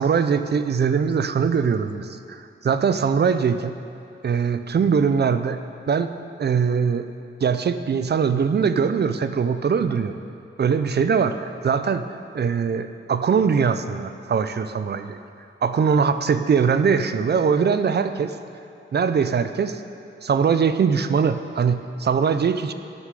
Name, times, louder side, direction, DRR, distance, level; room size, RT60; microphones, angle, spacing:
voice 1, 0.0-3.8 4.2-5.6 5.9-6.1 6.4-7.1 7.4-10.2 10.6-12.1 12.3-15.2 15.6-18.3 18.9-19.8 20.2-22.7, right 6 dB, 55° right, 10 dB, 0.4 m, -21 dB
11.0 x 6.3 x 6.8 m, 2.6 s
wide cardioid pair, 165°, 21 cm